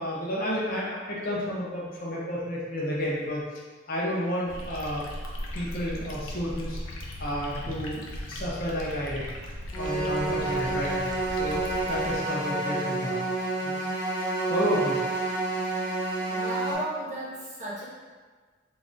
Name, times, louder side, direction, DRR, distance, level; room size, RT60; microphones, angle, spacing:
voice 1, 0.0-3.4 3.9-5.1 5.5-6.8 7.2-8.0 8.3-9.3 9.8-11.1 11.4-13.2 13.6-13.7 14.5-15.0, equal, 45° left, -5 dB, 0.8 m, -31 dB
sound 1, 4.5-12.2, left 1 dB, 85° left, 0.6 m, -38 dB
sound 2, 9.7-16.7, right 2 dB, 10° left, 0.8 m, -29 dB
voice 2, 15.7-16.0 16.3-17.8, right 1 dB, 35° right, -7 dB, 1.0 m, -35 dB
3.9 x 2.6 x 3.6 m, 1.5 s
head